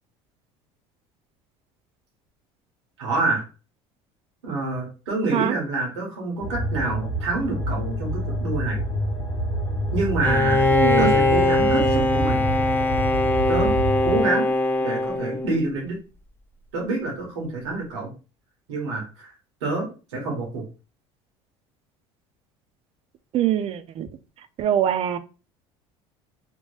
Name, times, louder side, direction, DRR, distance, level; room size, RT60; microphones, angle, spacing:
voice 1, 3.0-3.4 4.4-8.8 9.9-10.6 11.0-12.4 13.5-13.7 14.0-14.5 14.8-16.0 16.7-18.1 18.7-19.3 19.6-20.6, right 3 dB, 90° right, -1 dB, 1.2 m, -27 dB
sound 1, 6.4-14.2, right 1 dB, 30° left, 0.8 m, -27 dB
Bowed string instrument, 10.2-15.8, left 2 dB, 15° left, 0.4 m, -21 dB
voice 2, 10.7-11.1 23.3-24.1 24.6-25.2, right 11 dB, 45° right, 12 dB, 0.4 m, -23 dB
2.9 x 2.2 x 3.1 m, 0.32 s
supercardioid pair, 85°, 14 cm